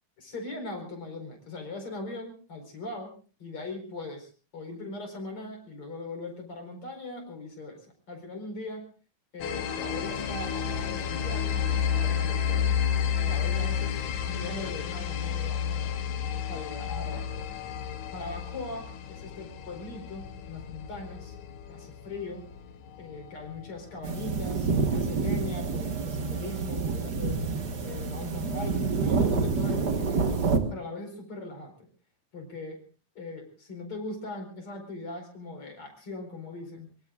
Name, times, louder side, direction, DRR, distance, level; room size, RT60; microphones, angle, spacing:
voice 1, 0.2-3.1 3.4-8.9 9.3-12.7 13.2-16.0 16.5-17.5 18.1-21.4 21.7-22.5 23.0-27.5 27.8-31.9 32.3-32.8 33.2-36.9, left 2 dB, 45° left, 4 dB, 5.4 m, -40 dB
sound 1, 9.4-24.9, left 8 dB, 80° left, 2.8 m, -31 dB
sound 2, 24.0-30.6, right 4 dB, 40° right, 1.7 m, -28 dB
23.5 x 23.5 x 2.5 m, 0.37 s
omnidirectional pair, 3.4 m